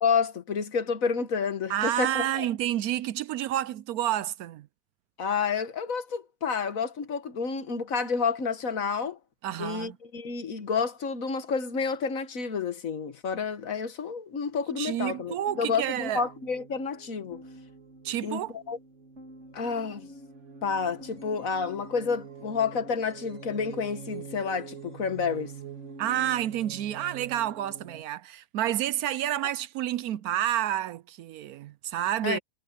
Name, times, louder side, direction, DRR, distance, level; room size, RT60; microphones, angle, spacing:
voice 1, 0.0-2.5 5.2-9.2 9.6-17.4 18.2-18.8 19.5-20.1 20.6-25.5 32.2-32.4, left 5 dB, 60° left, 1.7 m, -30 dB
voice 2, 1.7-4.7 9.4-10.0 14.8-16.2 18.0-18.6 26.0-32.4, right 12 dB, 75° right, 1.0 m, -29 dB
sound 1, 14.9-28.0, right 5 dB, 45° right, 3.4 m, -45 dB
omnidirectional pair, 1.7 m